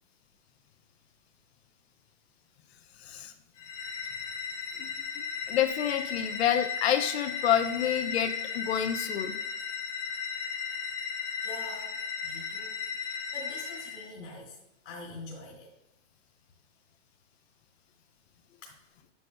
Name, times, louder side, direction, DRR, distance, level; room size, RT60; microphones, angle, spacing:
voice 1, 3.0-3.3 4.8-9.4, left 10 dB, 60° left, 9 dB, 0.7 m, -29 dB
sound 1, 3.6-14.1, left 6 dB, 20° left, 0.8 m, -36 dB
voice 2, 11.4-12.0 12.2-15.7, left 2 dB, 75° left, -4 dB, 2.8 m, -45 dB
9.7 x 7.8 x 2.2 m, 0.92 s
supercardioid pair, 170°, 36 cm